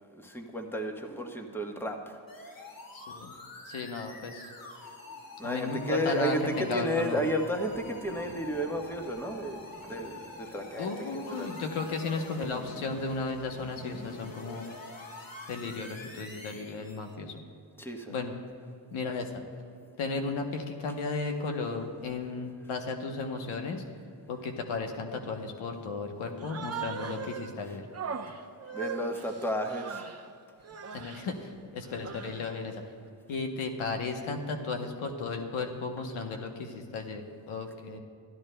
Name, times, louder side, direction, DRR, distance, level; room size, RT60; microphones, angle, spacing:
voice 1, 0.1-2.6 4.7-4.9 5.4-11.6 17.8-18.1 27.7-27.8 28.7-30.1, equal, 5° left, 3 dB, 1.1 m, -33 dB
sound 1, 2.3-17.1, left 3 dB, 45° left, 1.6 m, -46 dB
voice 2, 2.9-3.3 3.6-4.5 5.4-7.2 10.8-14.7 15.5-17.4 18.1-18.3 18.9-19.4 20.0-23.8 24.3-27.8 30.9-32.8 33.3-38.0, left 4 dB, 85° left, 4 dB, 1.0 m, -34 dB
Human voice, 26.4-27.5 27.9-30.3 30.6-31.3 31.8-32.6, right 6 dB, 30° right, 0.8 m, -39 dB
14.0 x 12.5 x 2.2 m, 2.4 s
cardioid pair, 60°, 49 cm